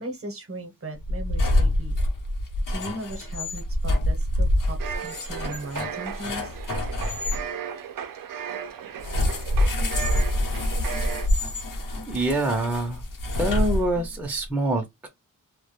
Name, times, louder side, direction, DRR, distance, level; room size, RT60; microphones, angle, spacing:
voice 1, 0.0-1.9 2.7-6.6, right 2 dB, 45° right, 0.8 m, -37 dB
sound 1, 1.0-7.4 9.0-14.2, left 1 dB, 80° left, 0.8 m, -26 dB
sound 2, 4.8-11.3, right 8 dB, 85° right, 0.5 m, -35 dB
voice 2, 12.1-13.0 13.4-15.1, right 1 dB, 5° right, 0.5 m, -25 dB
2.2 x 2.1 x 2.9 m
wide cardioid pair, 130°, 32 cm